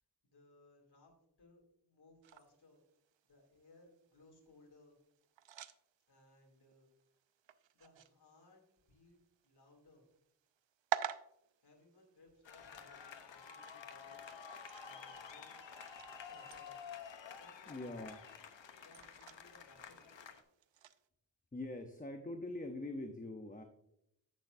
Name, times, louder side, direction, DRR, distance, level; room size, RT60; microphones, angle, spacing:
voice 1, 0.2-2.8 3.2-5.0 6.1-6.9 7.7-9.2 9.4-10.1 11.6-14.5 14.8-15.5 15.9-16.8 17.3-17.9 18.8-20.0, left 2 dB, 60° left, 0 dB, 2.8 m, -65 dB
sound 1, 2.2-21.1, right 10 dB, 75° right, 0.6 m, -50 dB
sound 2, 12.4-20.4, left 6 dB, 75° left, 1.0 m, -51 dB
voice 2, 17.7-18.2 21.5-23.6, left 2 dB, 20° left, 5 dB, 0.8 m, -43 dB
10.5 x 8.4 x 2.6 m, 0.78 s
wide cardioid pair, 105°, 45 cm